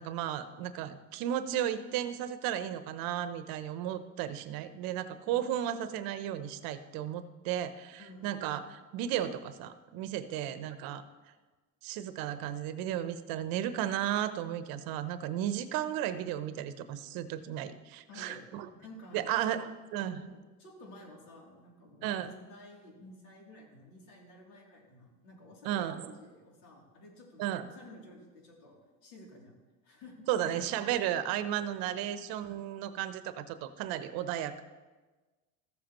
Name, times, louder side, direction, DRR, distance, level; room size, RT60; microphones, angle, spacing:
voice 1, 0.0-11.0 11.8-18.7 19.1-20.2 22.0-22.3 25.6-26.1 27.4-27.7 30.3-34.6, right 11 dB, 60° right, 12 dB, 0.8 m, -34 dB
voice 2, 8.0-8.4 10.3-10.5 18.1-18.4 18.7-19.6 20.0-29.5 29.8-30.7 31.7-31.9, left 1 dB, 85° left, -2 dB, 3.0 m, -52 dB
14.0 x 7.5 x 3.0 m, 1.3 s
supercardioid pair, 125°, 40 cm